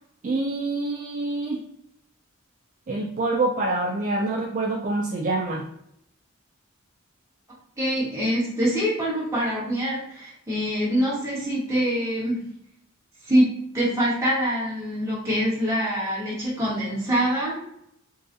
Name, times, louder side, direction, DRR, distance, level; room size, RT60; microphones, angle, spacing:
voice 1, 0.2-1.6 2.9-5.6, right 2 dB, 35° right, 0 dB, 0.3 m, -26 dB
voice 2, 7.8-12.4 13.3-17.6, equal, 15° right, -8 dB, 1.3 m, -24 dB
3.8 x 2.4 x 2.6 m, 0.76 s
head